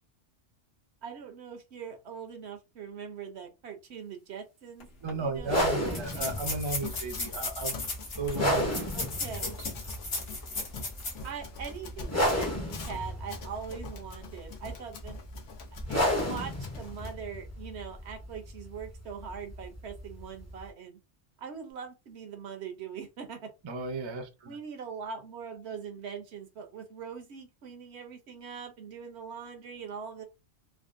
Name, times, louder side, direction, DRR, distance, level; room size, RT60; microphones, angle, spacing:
voice 1, 1.0-4.9 5.2-6.4 8.9-9.6 11.2-15.2 15.9-21.0 21.4-23.5 24.5-30.2, right 6 dB, 70° right, 0.9 m, -42 dB
sound 1, 4.8-4.9 5.1-5.2 5.9-11.3 11.7-11.8 12.3-12.4, left 3 dB, 60° left, 1.1 m, -36 dB
voice 2, 5.0-7.8 8.2-8.8 9.4-9.5 23.6-24.6, right 3 dB, 35° right, 0.5 m, -34 dB
sound 2, 5.4-20.7, equal, 20° left, 0.6 m, -34 dB
Run, 5.5-17.1, left 4 dB, 85° left, 1.1 m, -44 dB
3.4 x 2.1 x 2.5 m
omnidirectional pair, 1.2 m